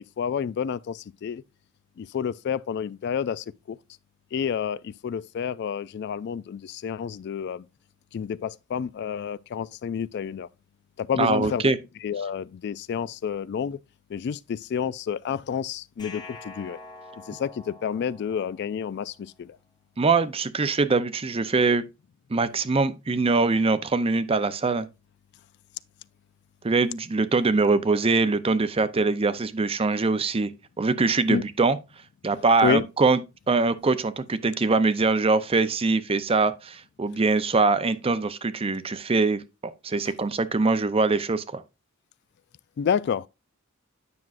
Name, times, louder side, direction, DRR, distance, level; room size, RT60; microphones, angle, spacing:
voice 1, 0.0-1.4 2.0-3.8 4.3-7.7 8.1-10.5 11.0-13.8 14.1-16.8 17.2-19.6 31.3-31.4 32.6-32.9 40.0-40.1 42.8-43.3, left 7 dB, 55° left, 0.3 m, -29 dB
voice 2, 11.2-11.8 20.0-21.8 22.3-24.9 26.6-30.5 30.8-31.8 32.2-33.2 33.5-41.6, right 3 dB, 30° right, 0.5 m, -23 dB
sound 1, 16.0-19.1, left 3 dB, 20° left, 1.2 m, -45 dB
9.5 x 6.0 x 2.5 m
head